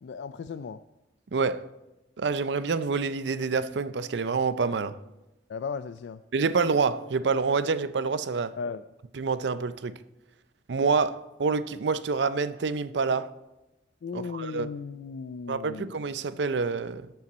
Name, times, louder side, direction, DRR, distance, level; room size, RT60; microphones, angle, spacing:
voice 1, 0.0-0.8 5.5-6.2 8.6-8.8 14.0-15.9, left 5 dB, 80° left, 0.3 m, -36 dB
voice 2, 1.3-1.7 2.2-5.0 6.3-8.5 9.1-10.0 10.7-13.3 14.1-14.7 15.5-17.1, right 4 dB, 80° right, 0.5 m, -27 dB
18.0 x 7.0 x 4.2 m
head